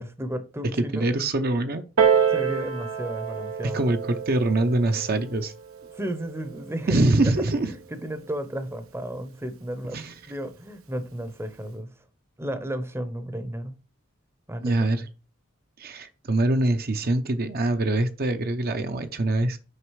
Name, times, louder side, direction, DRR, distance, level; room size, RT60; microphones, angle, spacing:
voice 1, 0.0-1.0 2.3-3.8 5.9-7.3 7.6-11.9 12.4-13.8 14.5-14.8, right 1 dB, 10° right, 0.8 m, -33 dB
voice 2, 0.8-1.8 3.7-5.5 6.9-7.7 9.9-10.1 14.6-15.1 15.8-19.6, right 2 dB, 45° right, 0.7 m, -24 dB
Piano, 2.0-7.2 8.0-8.1, right 7 dB, 90° right, 1.2 m, -27 dB
6.6 x 5.0 x 4.7 m
head